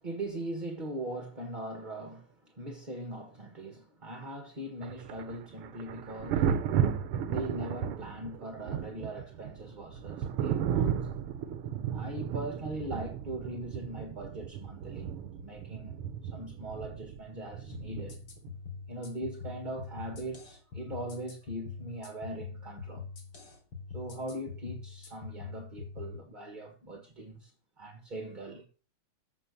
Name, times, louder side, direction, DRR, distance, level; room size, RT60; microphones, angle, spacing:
voice 1, 0.0-6.5 7.2-11.1 11.9-15.1 15.4-16.0 16.3-18.2 18.9-23.1 23.9-27.5 27.8-28.7, right 1 dB, 25° right, 1.5 m, -40 dB
Thunder, 4.8-18.5 20.1-20.3, right 8 dB, 90° right, 1.9 m, -34 dB
sound 1, 17.7-26.1, left 5 dB, 80° left, 3.8 m, -44 dB
14.5 x 5.9 x 6.9 m
omnidirectional pair, 2.4 m